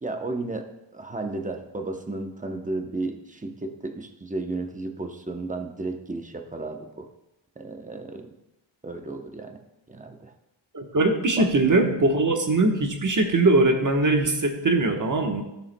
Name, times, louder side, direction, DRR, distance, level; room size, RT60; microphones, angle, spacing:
voice 1, 0.0-0.7 0.9-7.1 7.6-8.3 8.8-9.6 9.9-10.3 11.4-11.5, right 2 dB, 15° right, 4 dB, 0.8 m, -33 dB
voice 2, 10.7-15.4, right 2 dB, 40° right, 3 dB, 1.2 m, -21 dB
15.0 x 6.9 x 2.2 m, 0.92 s
wide cardioid pair, 130°, 49 cm